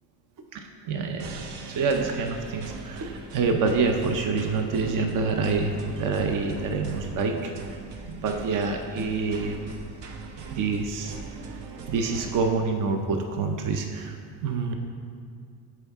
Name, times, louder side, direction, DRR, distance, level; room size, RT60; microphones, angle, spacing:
voice 1, 0.5-1.4 1.7-7.5 8.0-9.6 10.5-11.2 11.9-14.1 14.4-14.7, right 4 dB, 50° right, 4 dB, 0.7 m, -27 dB
sound 1, 1.2-12.5, right 4 dB, 70° right, 0.9 m, -41 dB
12.5 x 4.6 x 3.5 m, 2.3 s
cardioid pair, 140°, 42 cm